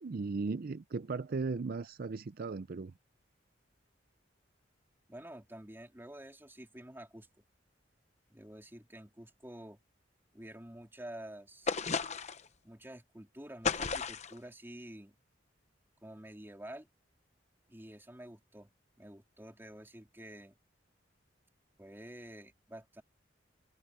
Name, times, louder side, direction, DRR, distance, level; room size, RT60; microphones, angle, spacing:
voice 1, 0.0-2.9, right 4 dB, 50° right, 0.5 m, -37 dB
voice 2, 5.1-7.3 8.3-9.8 10.3-11.7 12.6-15.1 16.0-16.9 17.7-18.7 19.0-20.5 21.8-23.0, right 1 dB, 10° right, 3.2 m, -49 dB
sound 1, 11.7-12.5 13.6-14.4, left 5 dB, 40° left, 0.9 m, -33 dB
open air
head